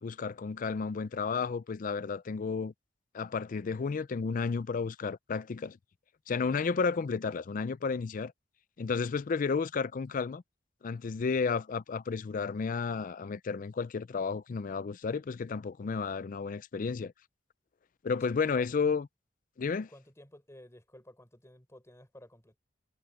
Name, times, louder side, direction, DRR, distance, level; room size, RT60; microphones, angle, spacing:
voice 1, 0.0-2.7 3.1-5.8 6.3-8.3 8.8-10.4 10.8-17.1 18.0-19.1 19.6-19.9, left 5 dB, 45° left, 0.4 m, -32 dB
voice 2, 18.3-18.7 19.8-22.6, left 1 dB, 15° left, 5.3 m, -54 dB
head